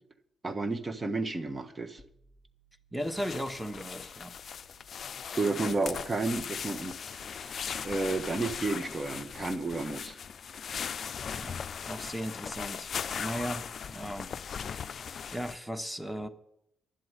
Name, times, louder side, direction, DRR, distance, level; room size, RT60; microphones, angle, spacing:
voice 1, 0.4-2.0 5.4-10.2, right 3 dB, 30° right, 11 dB, 1.3 m, -32 dB
sound 1, 2.0-8.2, right 4 dB, 55° right, 5.3 m, -66 dB
voice 2, 2.9-4.4 11.3-12.9 13.2-14.3 14.6-14.9 15.3-16.3, equal, 5° right, 9 dB, 1.4 m, -37 dB
sound 2, 3.0-15.6, left 7 dB, 55° left, 0.4 m, -39 dB
11.5 x 7.7 x 9.5 m, 0.79 s
hypercardioid pair, 50°, 0 cm